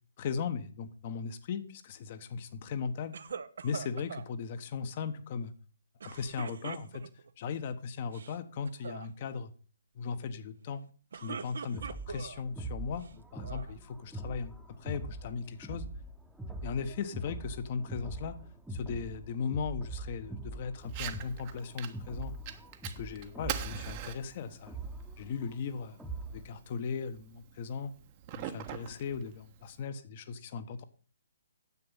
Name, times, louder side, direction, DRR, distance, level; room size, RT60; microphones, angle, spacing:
voice 1, 0.2-3.1 3.6-5.5 6.0-7.0 7.4-9.5 9.9-10.9 11.2-11.8 12.1-15.8 16.6-18.4 18.7-22.3 23.0-24.8 25.2-25.9 26.3-27.9 28.3-30.8, left 5 dB, 40° left, 11 dB, 1.1 m, -37 dB
sound 1, 3.1-4.3 6.0-7.3 8.0-8.4 8.7-9.1 10.9-12.4 13.0-13.7, right 6 dB, 60° right, 0.7 m, -43 dB
sound 2, 11.7-26.5, right 2 dB, ahead, 1.0 m, -43 dB
Fire, 20.8-29.8, right 11 dB, 30° right, 1.0 m, -45 dB
9.7 x 7.9 x 5.6 m, 0.38 s
figure-of-eight pair, 135°, 0 cm